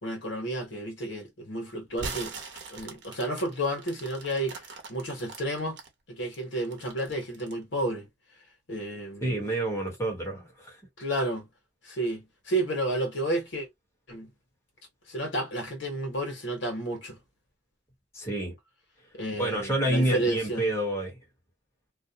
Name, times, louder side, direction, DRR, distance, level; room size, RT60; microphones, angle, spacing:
voice 1, 0.0-2.3 2.7-4.6 4.9-5.8 6.1-8.1 8.7-9.4 11.0-11.5 11.8-13.7 14.1-14.3 15.1-17.2 19.1-20.6, right 1 dB, 80° left, 1.1 m, -31 dB
sound 1, 1.9-5.9 6.3-7.6, right 4 dB, 70° right, 0.8 m, -41 dB
voice 2, 9.2-10.8 18.1-18.5 19.4-21.2, right 1 dB, 15° left, 1.1 m, -28 dB
2.5 x 2.1 x 2.7 m
head